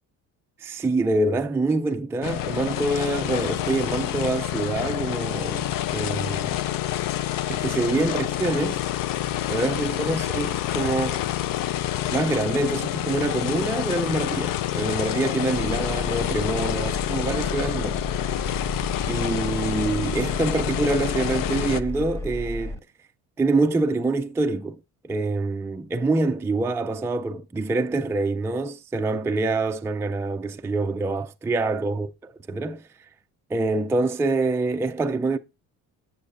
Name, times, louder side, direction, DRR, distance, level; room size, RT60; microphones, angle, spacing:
voice 1, 0.6-6.6 7.5-8.8 9.5-11.2 12.1-18.0 18.4-18.6 19.1-22.8 23.4-32.8 33.5-35.4, right 3 dB, 10° right, 0.3 m, -26 dB
sound 1, 2.2-21.8, left 13 dB, 65° left, 0.5 m, -28 dB
Engine, 15.5-22.8, left 1 dB, 10° left, 1.1 m, -33 dB
8.1 x 6.4 x 2.5 m
supercardioid pair, 85°, 37 cm